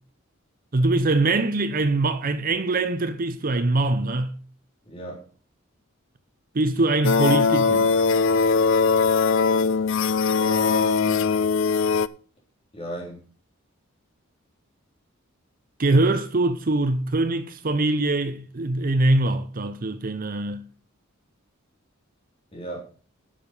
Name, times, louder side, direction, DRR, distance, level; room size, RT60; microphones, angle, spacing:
voice 1, 0.7-4.3 6.5-7.9 15.8-20.6, right 2 dB, 40° right, 0.6 m, -23 dB
voice 2, 4.8-5.2 10.4-11.4 12.7-13.2 22.5-22.8, right 2 dB, 25° left, 4.0 m, -34 dB
sound 1, 7.0-12.1, left 5 dB, 60° left, 0.5 m, -20 dB
10.0 x 7.2 x 5.5 m
head